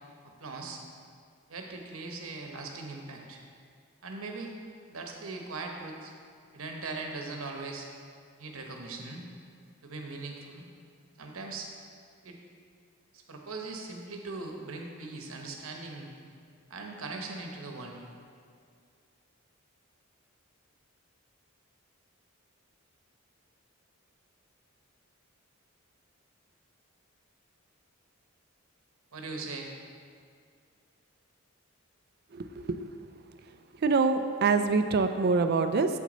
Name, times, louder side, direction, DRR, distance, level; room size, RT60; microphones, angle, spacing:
voice 1, 0.2-0.8 1.5-3.4 4.0-4.5 4.9-6.1 6.5-7.9 8.4-9.3 9.8-10.7 11.2-11.7 12.2-12.4 13.1-16.1 16.7-18.0 29.1-29.7, right 3 dB, 70° right, 2 dB, 0.9 m, -40 dB
voice 2, 32.3-32.9 33.8-35.9, right 4 dB, 45° right, 9 dB, 0.4 m, -25 dB
7.7 x 6.2 x 3.9 m, 2.2 s
head